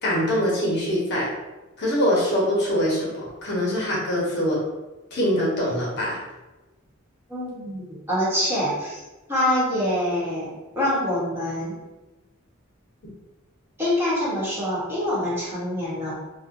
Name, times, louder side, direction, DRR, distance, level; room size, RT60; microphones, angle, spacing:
voice 1, 0.0-1.3 1.8-4.6 5.1-6.2, equal, 55° left, -5 dB, 1.0 m, -23 dB
voice 2, 7.3-9.0 9.3-11.7 13.8-16.1, left 1 dB, 10° right, -9 dB, 1.1 m, -25 dB
4.2 x 2.2 x 2.6 m, 1.1 s
head